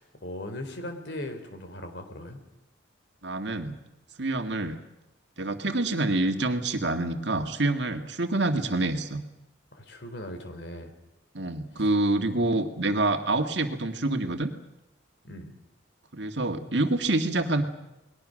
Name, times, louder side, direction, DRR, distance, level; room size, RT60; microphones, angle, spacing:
voice 1, 0.0-2.4 9.7-10.9 11.7-11.9 12.3-12.6 15.2-15.5, left 1 dB, 60° left, 7 dB, 3.8 m, -39 dB
voice 2, 3.2-3.8 4.2-4.8 5.4-9.2 11.3-14.5 16.1-17.6, right 2 dB, 60° right, 6 dB, 2.1 m, -27 dB
29.5 x 21.0 x 6.6 m, 0.91 s
head